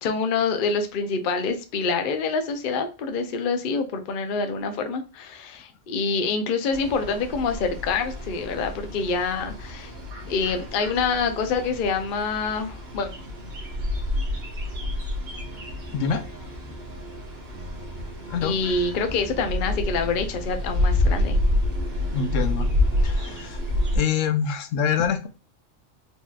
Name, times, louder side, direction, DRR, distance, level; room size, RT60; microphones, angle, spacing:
voice 1, 0.0-9.9 10.3-13.1 18.4-21.4, left 4 dB, 50° left, 0.7 m, -26 dB
sound 1, 6.7-24.0, left 1 dB, 55° right, 1.3 m, -28 dB
sound 2, 15.4-20.6, equal, 25° right, 1.5 m, -44 dB
voice 2, 15.9-16.2 18.3-18.6 22.1-22.7 23.0-23.6 23.9-25.3, left 7 dB, 80° left, 0.9 m, -25 dB
4.2 x 3.0 x 2.3 m
omnidirectional pair, 1.3 m